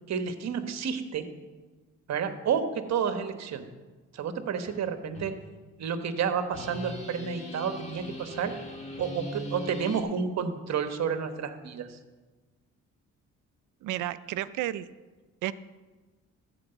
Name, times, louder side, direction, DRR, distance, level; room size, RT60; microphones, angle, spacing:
voice 1, 0.1-1.2 2.1-3.7 4.1-5.3 5.8-8.5 9.0-12.0, right 6 dB, 60° right, 8 dB, 1.2 m, -30 dB
sound 1, 4.7-4.8 5.1-5.3 6.5-10.0, left 1 dB, 25° left, 2.0 m, -40 dB
voice 2, 13.8-14.9 15.4-15.5, right 14 dB, 80° right, 15 dB, 0.5 m, -31 dB
13.5 x 4.8 x 7.9 m, 1.3 s
cardioid pair, 90°, 30 cm